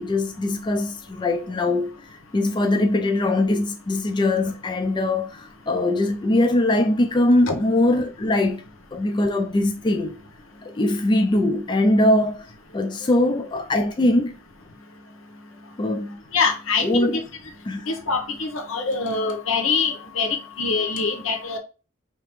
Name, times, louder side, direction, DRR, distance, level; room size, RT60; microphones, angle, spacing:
voice 1, 0.0-8.6 8.9-10.2 10.6-12.5 12.7-14.4 15.8-16.2 16.8-17.2 17.7-17.9, left 1 dB, 20° left, 0.3 m, -21 dB
voice 2, 16.3-17.2 17.9-21.6, left 4 dB, 80° left, 0.9 m, -24 dB
5.0 x 2.8 x 3.1 m
head